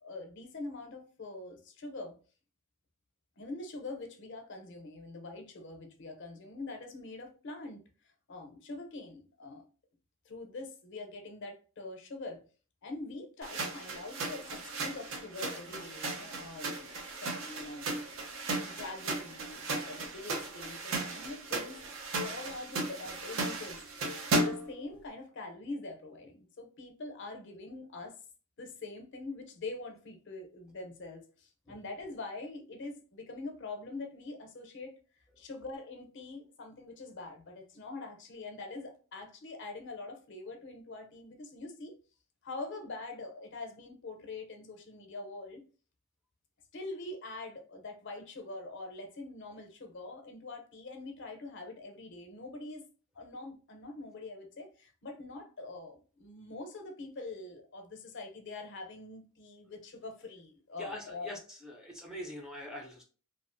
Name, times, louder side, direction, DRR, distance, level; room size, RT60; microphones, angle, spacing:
voice 1, 0.0-2.1 3.4-7.8 8.3-9.7 10.3-12.4 12.8-17.9 18.6-21.8 22.2-28.2 28.6-35.0 35.4-41.9 42.4-45.6 46.7-52.8 53.1-61.3, left 3 dB, 60° left, 0.6 m, -44 dB
sound 1, 13.4-24.8, right 2 dB, 70° right, 0.6 m, -36 dB
voice 2, 60.8-63.0, left 1 dB, 5° right, 0.4 m, -43 dB
2.6 x 2.4 x 2.5 m
head